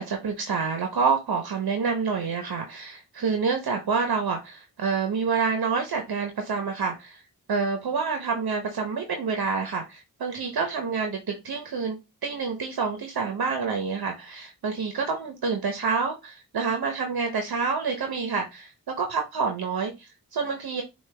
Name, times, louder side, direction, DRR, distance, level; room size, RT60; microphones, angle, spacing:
voice 1, 0.0-7.2 7.5-12.0 12.2-20.8, right 5 dB, 75° right, 5 dB, 0.9 m, -28 dB
5.9 x 2.5 x 3.3 m, 0.23 s
cardioid pair, 45°, 37 cm